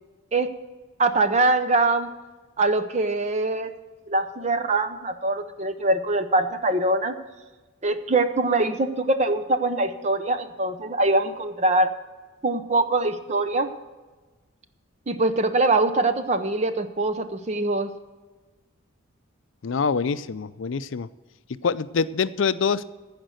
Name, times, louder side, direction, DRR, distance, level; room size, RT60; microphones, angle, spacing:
voice 1, 1.0-2.1 2.6-3.7 4.1-7.1 7.8-11.9 12.4-13.7 15.1-17.9, right 2 dB, 30° right, 9 dB, 0.6 m, -23 dB
voice 2, 19.6-21.1 21.6-22.8, left 5 dB, 65° left, 14 dB, 0.5 m, -25 dB
15.0 x 5.2 x 7.8 m, 1.3 s
head